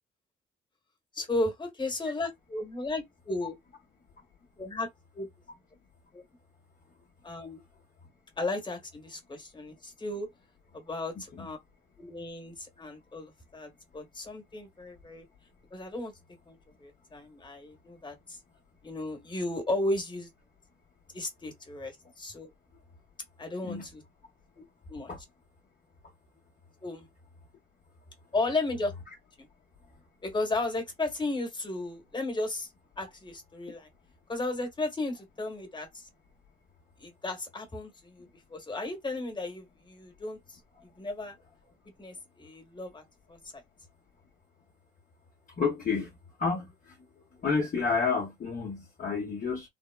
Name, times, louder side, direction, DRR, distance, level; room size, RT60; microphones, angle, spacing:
voice 1, 1.1-3.6 4.6-4.9 5.1-5.3 6.1-6.2 7.2-7.6 8.4-10.3 10.7-11.6 12.0-15.2 15.7-16.1 16.4-18.4 18.8-20.3 21.1-22.5 23.4-24.0 24.9-25.1 26.8-27.1 28.3-28.9 29.4-29.5 30.2-32.7 33.0-33.9 34.3-36.1 37.0-41.4 42.0-43.0 43.3-43.4, left 2 dB, 25° left, 1.3 m, -34 dB
voice 2, 45.6-46.1 46.4-47.0 47.4-49.7, left 5 dB, 40° left, 0.9 m, -30 dB
3.5 x 2.0 x 2.2 m
cardioid pair, 90°, 20 cm